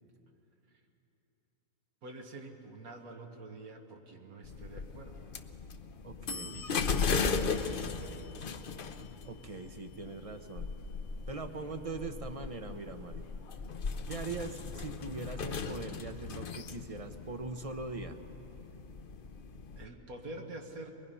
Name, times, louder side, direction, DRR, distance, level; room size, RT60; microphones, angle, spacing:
voice 1, 2.0-5.3 6.5-8.4 19.5-20.9, right 2 dB, 80° right, 2 dB, 1.8 m, -47 dB
sound 1, 4.4-19.8, left 5 dB, 50° left, 0.7 m, -37 dB
voice 2, 6.0-6.6 9.2-10.7 11.3-13.3 14.1-18.2, right 3 dB, 35° right, 7 dB, 0.6 m, -41 dB
23.0 x 21.0 x 5.5 m, 3.0 s
omnidirectional pair, 1.5 m